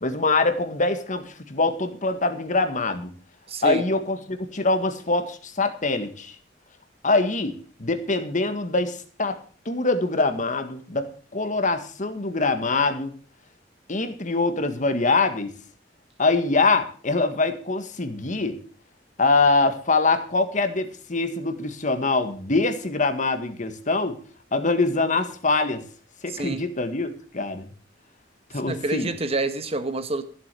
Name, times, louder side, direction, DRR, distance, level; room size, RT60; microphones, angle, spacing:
voice 1, 0.0-3.1 3.6-6.4 7.0-9.4 9.7-13.1 13.9-15.6 16.2-18.6 19.2-24.2 24.5-25.8 26.2-27.7 28.5-29.1, left 3 dB, 40° left, 1.7 m, -24 dB
voice 2, 3.5-3.8 26.3-26.6 28.6-30.2, right 2 dB, 35° right, 1.4 m, -28 dB
14.5 x 7.9 x 6.8 m
head